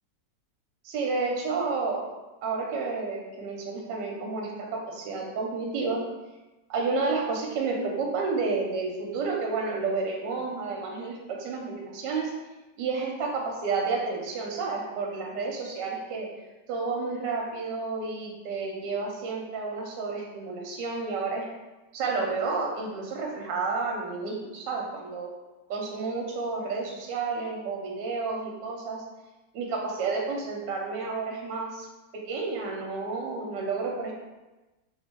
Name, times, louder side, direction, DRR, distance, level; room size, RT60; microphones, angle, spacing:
voice 1, 0.8-2.0 2.4-6.0 6.7-12.3 12.8-16.3 16.7-21.5 21.9-25.3 25.7-29.0 29.5-31.9 32.1-34.1, right 4 dB, 85° right, 0 dB, 1.3 m, -30 dB
3.1 x 2.6 x 4.3 m, 1.1 s
omnidirectional pair, 1.9 m